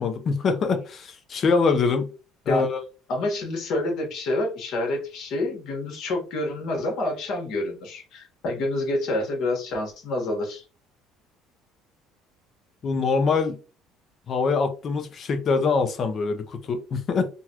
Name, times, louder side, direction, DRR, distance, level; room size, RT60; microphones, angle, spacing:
voice 1, 0.0-2.1 2.5-2.8 12.8-13.6 14.3-17.3, left 4 dB, 40° left, 0.7 m, -24 dB
voice 2, 3.1-10.6, left 2 dB, 60° left, 1.5 m, -28 dB
3.9 x 2.3 x 2.9 m
cardioid pair, 130°, 0 cm